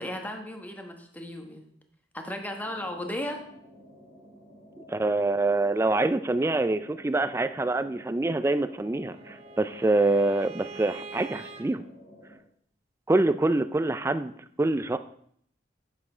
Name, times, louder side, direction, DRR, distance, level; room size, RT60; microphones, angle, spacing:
voice 1, 0.0-1.7 2.1-3.4, left 1 dB, 10° left, 4 dB, 1.1 m, -35 dB
sound 1, 2.6-12.4, equal, 75° left, 4.2 m, -52 dB
voice 2, 4.9-11.8 13.1-14.3 14.6-15.0, right 2 dB, 15° right, 12 dB, 0.3 m, -25 dB
Bowed string instrument, 8.5-11.6, right 4 dB, 35° right, 1.0 m, -45 dB
8.3 x 7.4 x 4.9 m, 0.66 s
head